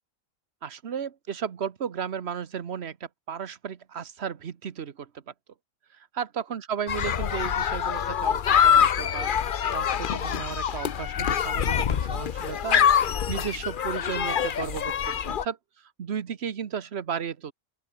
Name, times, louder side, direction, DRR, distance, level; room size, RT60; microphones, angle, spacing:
voice 1, 0.6-5.3 5.9-17.5, right 7 dB, 55° right, 1.3 m, -34 dB
sound 1, 6.9-15.4, left 8 dB, 50° left, 0.8 m, -25 dB
open air
omnidirectional pair, 1.4 m